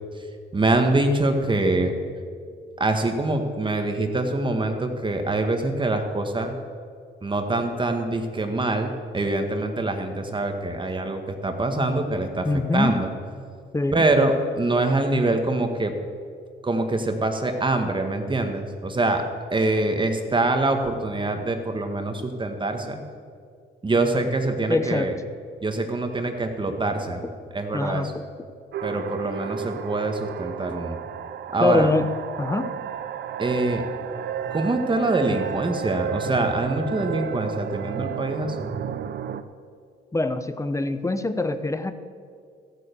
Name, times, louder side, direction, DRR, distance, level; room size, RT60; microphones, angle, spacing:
voice 1, 0.5-1.9 2.8-6.6 7.2-12.5 12.7-13.1 13.9-15.9 16.6-19.2 19.5-23.0 23.8-25.1 25.6-27.2 27.5-28.1 28.8-31.0 31.5-31.9 33.4-33.8 34.5-38.7, right 2 dB, 25° right, 5 dB, 1.7 m, -24 dB
voice 2, 12.4-13.0 13.7-14.0 24.7-25.1 27.7-28.1 31.6-32.1 32.4-32.7 40.1-41.9, left 2 dB, 15° left, 10 dB, 0.9 m, -24 dB
sound 1, 28.7-39.4, right 8 dB, 60° right, 0.7 m, -32 dB
14.5 x 9.0 x 7.0 m, 2.2 s
cardioid pair, 90°, 20 cm